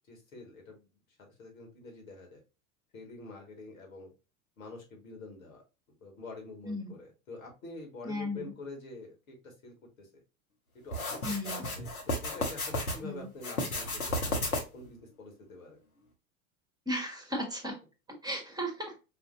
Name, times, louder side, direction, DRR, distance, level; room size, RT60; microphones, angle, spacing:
voice 1, 0.1-1.0 1.4-2.4 2.9-4.1 4.6-5.6 5.9-10.2 10.8-11.9 12.2-15.8, left 3 dB, 75° left, 1 dB, 1.7 m, -47 dB
voice 2, 6.6-7.0 8.0-8.5 11.2-11.6 13.0-13.3 16.9-17.7 18.2-19.0, equal, 10° right, 1 dB, 1.2 m, -35 dB
sound 1, 10.9-13.0 13.4-14.9, left 1 dB, 90° left, 1.1 m, -33 dB
4.9 x 2.6 x 2.6 m, 0.30 s
figure-of-eight pair, 80°, 42 cm